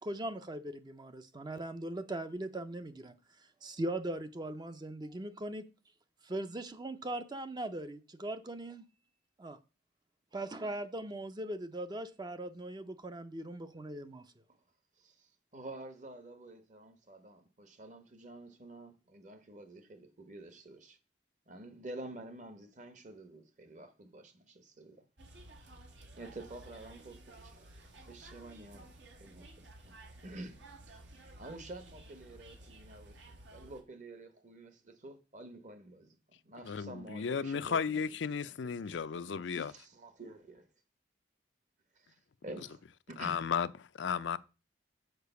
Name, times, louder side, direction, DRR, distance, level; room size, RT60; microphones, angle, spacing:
voice 1, 0.0-3.1 3.6-5.6 6.2-8.8 9.4-9.6 10.3-14.2, right 1 dB, 20° right, 0.5 m, -40 dB
voice 2, 15.0-21.0 21.5-25.1 25.6-25.7 26.2-28.9 29.2-30.0 30.2-30.6 30.9-31.0 31.4-40.7 41.9-43.4, right 2 dB, 40° right, 1.0 m, -50 dB
sound 1, 25.2-33.8, right 1 dB, 80° right, 1.7 m, -54 dB
voice 3, 36.7-39.7 43.2-43.7 44.0-44.4, left 6 dB, 80° left, 0.5 m, -34 dB
6.7 x 4.9 x 6.8 m
head